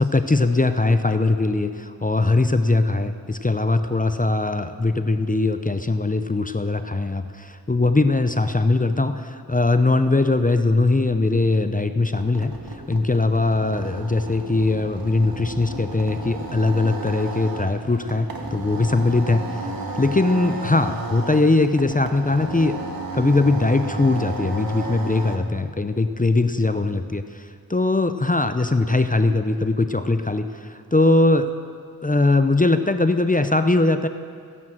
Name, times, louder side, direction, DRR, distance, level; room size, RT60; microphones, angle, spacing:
voice 1, 0.0-19.7 19.9-22.8 23.1-31.5 32.0-34.1, left 2 dB, 25° left, 9 dB, 0.6 m, -21 dB
sound 1, 12.1-25.4, right 2 dB, 75° right, 1.4 m, -33 dB
15.5 x 11.0 x 7.4 m, 2.2 s
wide cardioid pair, 55°, 36 cm